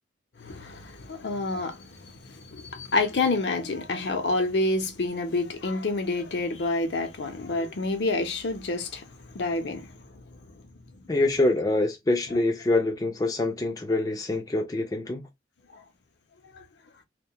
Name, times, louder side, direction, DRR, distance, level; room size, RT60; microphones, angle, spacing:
voice 1, 0.4-9.9 15.7-15.8 16.5-16.6, left 2 dB, 65° left, 0.6 m, -28 dB
voice 2, 11.1-15.3, left 2 dB, 20° left, 0.4 m, -25 dB
2.2 x 2.2 x 2.7 m
head